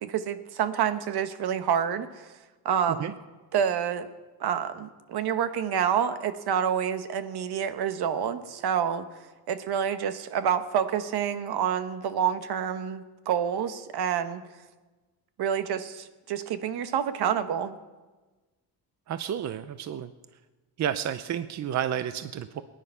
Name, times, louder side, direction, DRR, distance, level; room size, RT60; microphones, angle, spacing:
voice 1, 0.0-2.4 2.6-3.2 3.5-4.1 4.4-9.1 9.5-14.4 15.4-17.8, right 8 dB, 70° right, 10 dB, 1.1 m, -28 dB
voice 2, 19.1-20.1 20.8-22.6, right 9 dB, 45° right, 12 dB, 0.6 m, -31 dB
21.5 x 10.5 x 5.5 m, 1.2 s
cardioid pair, 160°, 40 cm